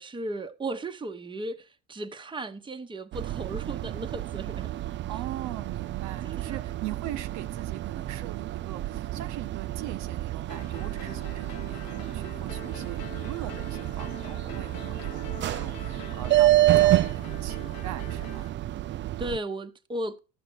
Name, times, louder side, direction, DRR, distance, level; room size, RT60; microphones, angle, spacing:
voice 1, 0.0-4.8 6.2-6.6 18.9-20.2, right 1 dB, 15° right, 1.0 m, -36 dB
sound 1, 3.1-19.4, right 15 dB, 40° right, 0.4 m, -29 dB
voice 2, 5.1-18.5, right 13 dB, 70° right, 0.7 m, -40 dB
sound 2, 10.5-18.5, left 8 dB, 65° left, 1.1 m, -45 dB
13.0 x 5.9 x 4.4 m
supercardioid pair, 85°, 30 cm